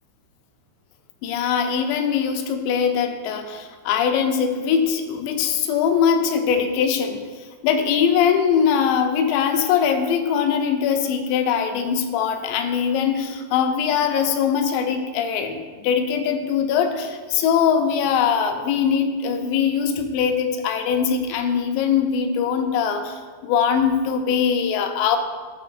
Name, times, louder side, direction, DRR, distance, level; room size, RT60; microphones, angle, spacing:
voice 1, 1.2-7.2 7.6-25.2, left 7 dB, 80° left, 5 dB, 2.7 m, -21 dB
12.5 x 6.7 x 2.5 m, 1.5 s
omnidirectional pair, 5.3 m